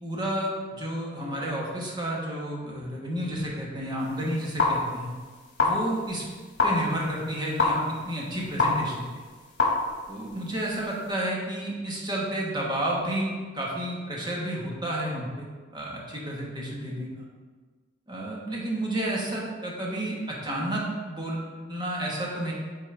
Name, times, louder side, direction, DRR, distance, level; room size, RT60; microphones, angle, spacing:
voice 1, 0.0-5.1 5.6-6.2 6.6-9.2 10.1-15.5 15.7-17.2 18.1-22.5, right 1 dB, 25° right, -3 dB, 1.3 m, -31 dB
sound 1, 4.0-11.2, left 3 dB, 75° left, 1.7 m, -29 dB
8.6 x 4.3 x 3.3 m, 1.5 s
head